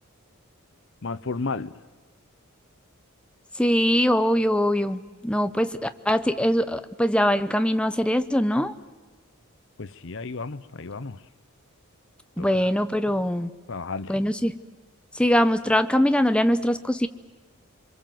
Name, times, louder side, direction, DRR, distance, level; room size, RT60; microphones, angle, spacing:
voice 1, 1.0-1.8 9.8-11.3 12.4-12.8 13.7-14.2, left 4 dB, 55° left, 0.8 m, -33 dB
voice 2, 3.6-8.7 12.4-13.5 14.1-14.5 15.1-17.1, equal, 5° left, 0.7 m, -22 dB
27.0 x 24.0 x 7.7 m
head